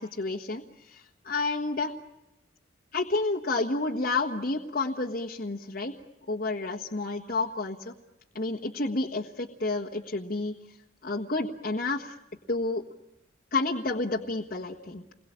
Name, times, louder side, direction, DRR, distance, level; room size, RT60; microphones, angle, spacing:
voice 1, 0.0-1.9 2.9-5.9 6.3-7.9 8.3-10.5 11.0-12.1 12.5-12.8 13.5-15.1, left 3 dB, 50° left, -2 dB, 1.5 m, -30 dB
29.5 x 22.0 x 8.8 m, 0.97 s
head